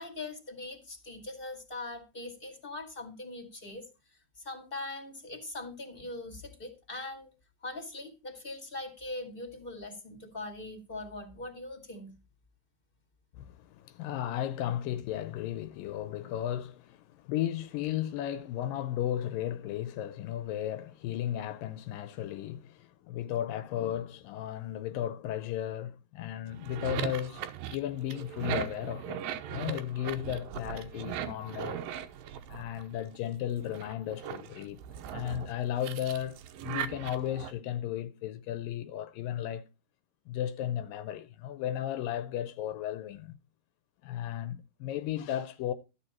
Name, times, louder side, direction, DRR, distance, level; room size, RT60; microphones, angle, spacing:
voice 1, 0.0-3.9 4.4-7.3 7.6-12.2, left 2 dB, 20° left, 1.8 m, -41 dB
voice 2, 13.3-27.4 27.7-29.2 29.5-31.8 32.5-34.8 35.1-39.6 40.3-43.4 44.0-45.7, left 11 dB, 80° left, 2.4 m, -35 dB
sound 1, 26.5-33.2 33.6-37.5, right 10 dB, 90° right, 2.7 m, -39 dB
13.0 x 8.6 x 4.3 m
omnidirectional pair, 4.0 m